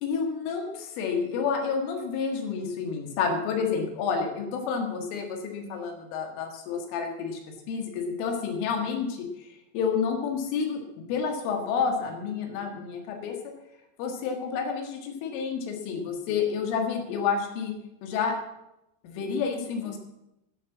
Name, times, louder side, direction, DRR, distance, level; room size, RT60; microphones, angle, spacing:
voice 1, 0.0-7.4 7.7-9.5 9.7-10.8 11.1-13.5 14.0-17.7 18.0-18.4 19.0-20.0, left 6 dB, 90° left, 3 dB, 4.4 m, -29 dB
11.0 x 11.0 x 7.3 m, 0.89 s
omnidirectional pair, 5.5 m